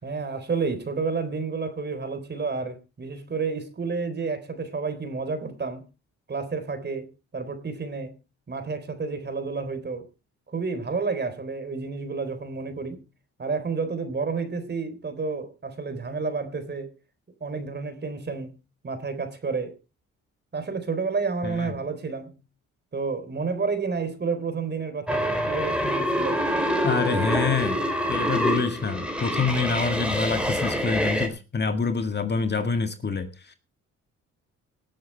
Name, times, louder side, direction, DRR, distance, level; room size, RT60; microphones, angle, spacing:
voice 1, 0.0-5.8 6.3-8.1 8.5-10.1 10.5-13.0 13.4-16.9 17.4-19.8 20.5-22.4 22.9-26.4 26.9-27.3, right 4 dB, 35° right, 3.8 m, -30 dB
sound 1, 25.1-31.3, equal, 5° right, 3.8 m, -26 dB
voice 2, 26.8-33.5, left 4 dB, 35° left, 1.9 m, -27 dB
18.5 x 8.6 x 4.5 m
cardioid pair, 90°, 30 cm